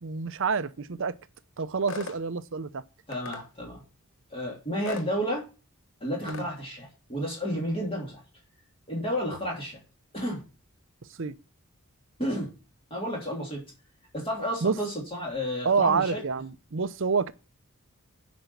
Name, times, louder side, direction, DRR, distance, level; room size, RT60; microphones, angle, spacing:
voice 1, 0.0-1.2 1.6-2.8 6.3-6.5 11.2-11.3 14.6-14.8 15.6-17.3, right 5 dB, 60° right, 0.6 m, -27 dB
sound 1, 1.9-2.2 3.1-3.4 4.8-5.1 6.3-6.5, left 4 dB, 60° left, 1.0 m, -37 dB
voice 2, 3.1-3.8 4.3-5.4 6.0-8.2 8.9-9.8 10.1-10.4 12.2-12.5 12.9-13.6 14.1-16.2, equal, 25° left, 3.2 m, -31 dB
9.1 x 5.2 x 7.0 m
head